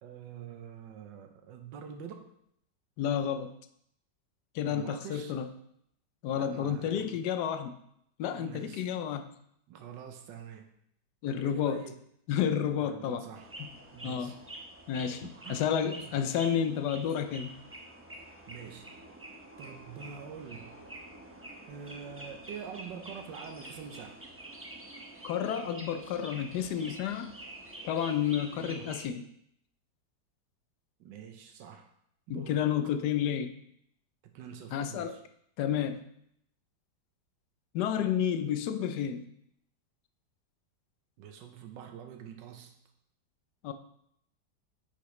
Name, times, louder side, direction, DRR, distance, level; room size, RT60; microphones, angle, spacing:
voice 1, 0.0-2.3 4.6-5.3 6.3-7.2 8.3-8.9 9.7-10.7 11.3-12.0 12.8-13.5 13.9-14.4 15.4-15.6 15.9-16.2 18.5-18.9 19.6-20.8 21.7-24.2 28.6-29.0 31.0-31.9 32.3-32.6 34.2-35.2 41.2-42.7, right 7 dB, 85° right, 5 dB, 1.5 m, -45 dB
voice 2, 3.0-3.5 4.5-5.5 6.2-7.7 8.2-9.3 11.2-11.8 12.3-13.2 13.6-13.7 14.0-14.4 14.9-17.5 25.2-27.3 27.8-29.2 32.3-33.5 34.7-35.2 35.6-36.1 37.7-39.3 43.6-43.7, left 8 dB, 75° left, 9 dB, 1.1 m, -31 dB
sound 1, 13.3-29.0, right 1 dB, 15° right, 0.4 m, -47 dB
8.5 x 6.0 x 3.2 m, 0.73 s
omnidirectional pair, 1.9 m